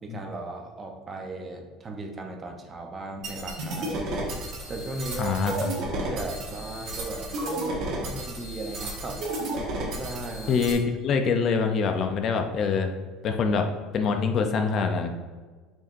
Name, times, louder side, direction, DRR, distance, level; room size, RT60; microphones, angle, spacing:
voice 1, 0.0-4.2 4.7-5.4 6.0-9.2 10.0-10.6, right 2 dB, 25° right, 3 dB, 0.8 m, -36 dB
sound 1, 3.2-10.7, right 1 dB, 50° right, 1.5 m, -33 dB
voice 2, 5.2-5.7 10.5-12.9 13.2-13.7 13.9-15.1, left 5 dB, 40° left, 5 dB, 0.5 m, -25 dB
7.4 x 4.9 x 2.6 m, 1.4 s
cardioid pair, 140°, 0 cm